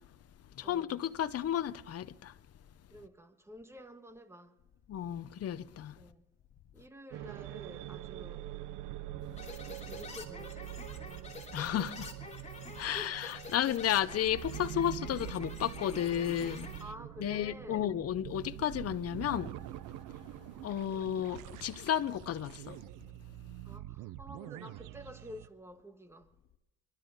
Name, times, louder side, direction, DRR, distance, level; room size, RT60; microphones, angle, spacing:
voice 1, 0.6-2.3 4.9-5.9 11.5-12.1 12.8-16.7 17.2-19.5 20.6-22.8, left 10 dB, 55° left, 0.7 m, -33 dB
voice 2, 2.9-4.6 6.0-6.2 6.7-8.5 9.8-11.1 12.9-13.1 16.8-17.9 23.6-26.3, equal, 10° right, 1.5 m, -50 dB
sound 1, 7.1-25.5, right 14 dB, 90° right, 0.6 m, -45 dB
sound 2, 9.4-16.8, left 3 dB, 25° left, 3.0 m, -47 dB
24.0 x 12.5 x 4.1 m
cardioid pair, 90°, 30 cm